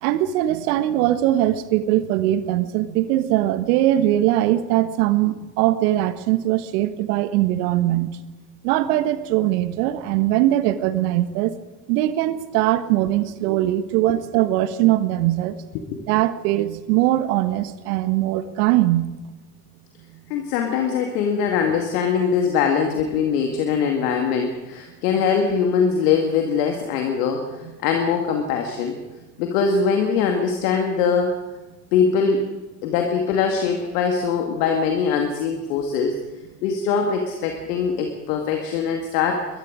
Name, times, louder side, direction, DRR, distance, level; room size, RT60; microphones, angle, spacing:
voice 1, 0.0-8.1 8.6-11.6 11.9-15.6 16.1-19.1, right 14 dB, 80° right, 12 dB, 1.5 m, -21 dB
voice 2, 20.3-27.6 27.8-29.0 29.4-31.3 31.9-32.5 32.8-36.2 36.6-39.5, left 6 dB, 80° left, 3 dB, 2.2 m, -22 dB
26.5 x 22.0 x 5.0 m, 1.2 s
hypercardioid pair, 45°, 46 cm